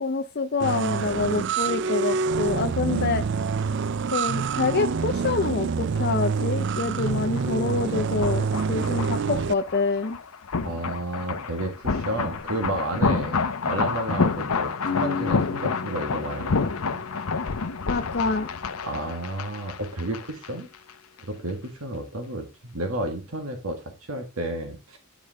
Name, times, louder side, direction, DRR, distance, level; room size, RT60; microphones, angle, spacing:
voice 1, 0.0-3.2 4.1-10.2 17.9-18.5, left 3 dB, 45° left, 0.6 m, -26 dB
sound 1, 0.6-9.5, right 5 dB, 55° right, 0.4 m, -26 dB
sound 2, 6.7-20.5 20.7-20.9, left 4 dB, 90° left, 0.9 m, -29 dB
voice 2, 8.7-9.2 10.6-13.4 13.7-17.0 18.8-20.7 21.3-25.0, right 1 dB, 80° right, 1.8 m, -32 dB
sound 3, 14.9-20.6, left 6 dB, 65° left, 1.6 m, -37 dB
10.5 x 5.0 x 3.5 m
head